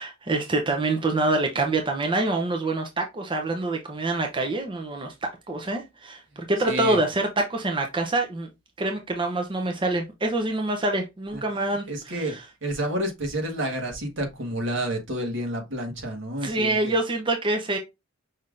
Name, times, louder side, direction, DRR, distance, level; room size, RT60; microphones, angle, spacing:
voice 1, 0.0-8.5 8.8-12.5 16.4-17.8, right 2 dB, 25° right, 0.6 m, -26 dB
voice 2, 6.7-7.0 11.9-12.3 12.6-16.9, right 1 dB, 65° right, 1.5 m, -29 dB
5.5 x 3.5 x 2.5 m
head